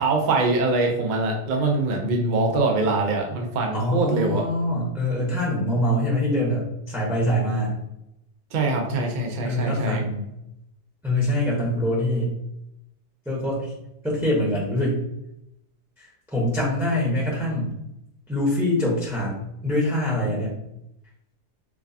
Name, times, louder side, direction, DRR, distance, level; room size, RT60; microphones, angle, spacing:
voice 1, 0.0-4.5 8.5-10.0, right 2 dB, 75° right, 1 dB, 0.4 m, -23 dB
voice 2, 3.7-7.8 9.4-10.3 11.0-12.4 13.2-13.7 14.0-15.0 16.0-17.7 18.3-19.3 19.6-20.6, left 1 dB, ahead, -5 dB, 0.6 m, -24 dB
4.4 x 2.2 x 2.7 m, 0.83 s
omnidirectional pair, 1.7 m